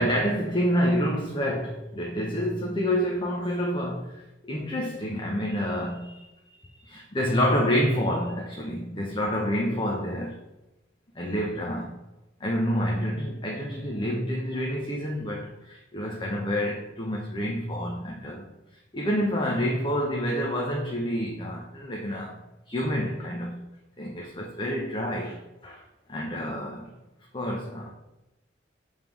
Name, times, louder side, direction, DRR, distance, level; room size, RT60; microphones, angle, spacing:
voice 1, 0.0-10.4 11.1-12.0 12.4-18.4 18.9-22.4 22.7-23.6 24.0-25.8 26.1-26.9 27.3-27.9, equal, 25° left, -2 dB, 1.0 m, -28 dB
7.4 x 3.7 x 6.1 m, 0.98 s
head